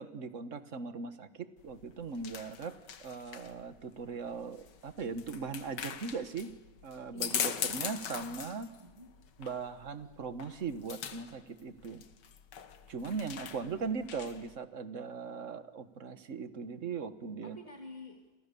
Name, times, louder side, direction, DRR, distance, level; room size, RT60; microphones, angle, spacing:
voice 1, 0.0-6.5 6.8-8.7 9.4-12.0 12.9-17.6, right 5 dB, 45° right, 11 dB, 1.5 m, -39 dB
sound 1, 1.6-14.6, left 8 dB, 65° left, 1.8 m, -42 dB
voice 2, 7.1-9.1 13.4-13.9 17.4-18.2, left 1 dB, 20° right, 3 dB, 2.5 m, -52 dB
28.5 x 27.5 x 7.0 m, 1.0 s
omnidirectional pair, 2.1 m